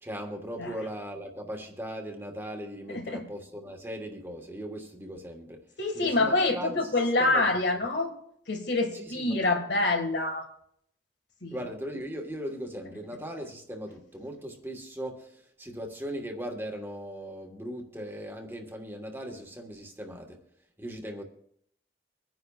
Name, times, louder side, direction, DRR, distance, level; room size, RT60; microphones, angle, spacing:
voice 1, 0.0-5.6 5.9-6.9 7.2-7.5 8.9-9.4 11.5-20.4 20.8-21.2, equal, 15° right, 2 dB, 1.4 m, -38 dB
voice 2, 2.9-3.2 5.8-8.1 8.5-10.5 11.4-11.6, left 2 dB, 75° left, 4 dB, 1.8 m, -26 dB
24.0 x 10.5 x 2.4 m, 0.69 s
head